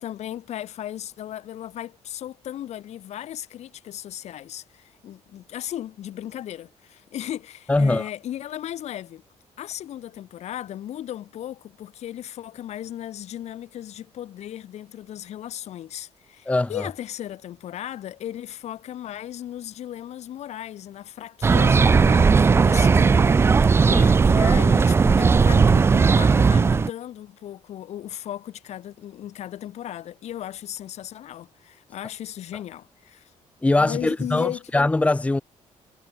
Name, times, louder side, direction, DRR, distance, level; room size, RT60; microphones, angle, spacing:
voice 1, 0.0-9.2 9.6-33.3 33.8-34.7, left 11 dB, 65° left, 6.5 m, -36 dB
voice 2, 7.7-8.1 16.5-16.9 23.9-24.1 33.6-35.4, left 2 dB, 10° left, 1.6 m, -22 dB
sound 1, 21.4-26.9, right 5 dB, 20° right, 0.4 m, -17 dB
cardioid pair, 150°, 12 cm